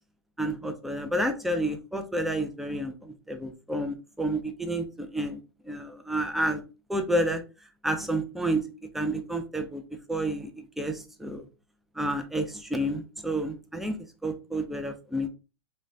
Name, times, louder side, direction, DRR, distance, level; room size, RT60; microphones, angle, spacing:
voice 1, 0.4-5.4 5.7-6.6 6.9-7.4 7.8-8.6 8.9-9.8 10.1-11.4 12.0-14.0 14.2-15.3, right 1 dB, ahead, 6 dB, 0.4 m, -30 dB
3.0 x 2.2 x 2.6 m, 0.32 s
hypercardioid pair, 105°, 13 cm